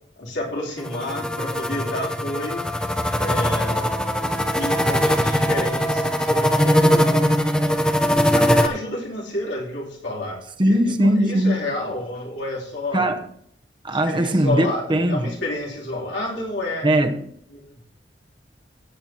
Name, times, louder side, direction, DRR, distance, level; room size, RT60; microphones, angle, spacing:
voice 1, 0.2-2.6 3.2-3.9 4.5-7.2 8.1-13.1 13.9-16.9 17.5-17.8, left 1 dB, 85° left, 3.2 m, -30 dB
sound 1, 0.8-8.7, equal, 5° left, 0.7 m, -21 dB
voice 2, 10.6-11.6 12.9-13.3 13.8-15.3 16.8-17.2, right 1 dB, 25° right, 0.9 m, -20 dB
17.0 x 8.9 x 2.9 m
head